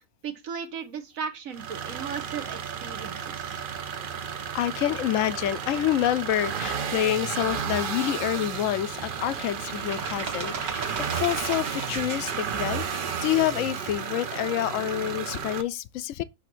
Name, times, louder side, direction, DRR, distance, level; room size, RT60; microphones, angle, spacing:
voice 1, 0.2-3.6, right 6 dB, 65° right, 1.5 m, -36 dB
sound 1, 1.5-15.6, right 7 dB, 50° right, 0.7 m, -33 dB
sound 2, 1.8-13.3, right 5 dB, 85° right, 1.8 m, -40 dB
voice 2, 4.5-16.2, left 12 dB, 65° left, 1.0 m, -28 dB
8.3 x 2.9 x 6.0 m
omnidirectional pair, 1.5 m